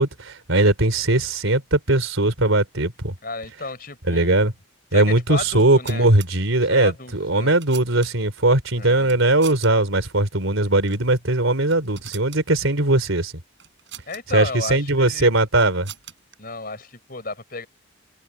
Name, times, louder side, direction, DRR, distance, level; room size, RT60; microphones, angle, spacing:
voice 1, 0.0-3.1 4.1-4.5 4.9-13.3 14.3-15.9, right 2 dB, 75° right, 3.5 m, -19 dB
voice 2, 3.2-4.4 4.9-6.1 6.7-7.5 8.8-9.2 14.1-15.3 16.4-17.7, left 3 dB, 45° left, 5.9 m, -33 dB
sound 1, 5.5-6.3 7.2-8.4 9.0-9.7 10.0-10.1 10.8-11.1 11.5-12.4 13.6-14.2 15.2-16.4, right 11 dB, 60° right, 5.5 m, -42 dB
head